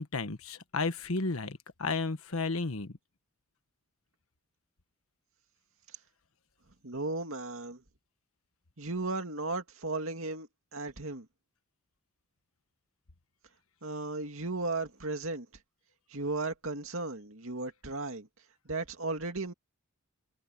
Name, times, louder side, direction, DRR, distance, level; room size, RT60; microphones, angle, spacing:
voice 1, 0.0-2.9, left 3 dB, 75° left, 1.5 m, -33 dB
voice 2, 6.8-7.8 8.8-11.3 13.8-15.5 16.1-18.3 18.7-19.5, right 3 dB, 65° right, 2.4 m, -35 dB
head